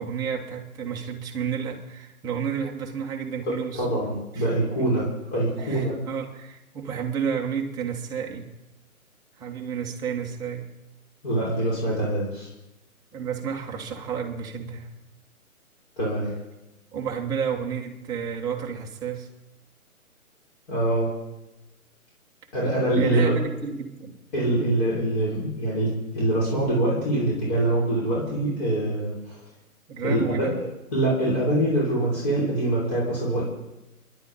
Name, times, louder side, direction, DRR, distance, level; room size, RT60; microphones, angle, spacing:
voice 1, 0.0-3.9 4.3-4.5 4.8-4.9 5.6-8.5 9.4-10.6 13.1-14.9 16.9-19.3 22.9-24.1 29.9-30.6, right 7 dB, 10° right, 1 dB, 1.1 m, -31 dB
voice 2, 3.5-6.0 11.2-12.5 16.0-16.3 20.7-21.1 22.5-23.3 24.3-29.4 30.0-30.5 30.9-33.4, right 1 dB, 30° left, -6 dB, 5.7 m, -24 dB
30.0 x 11.5 x 4.1 m, 0.96 s
figure-of-eight pair, 145°, 44 cm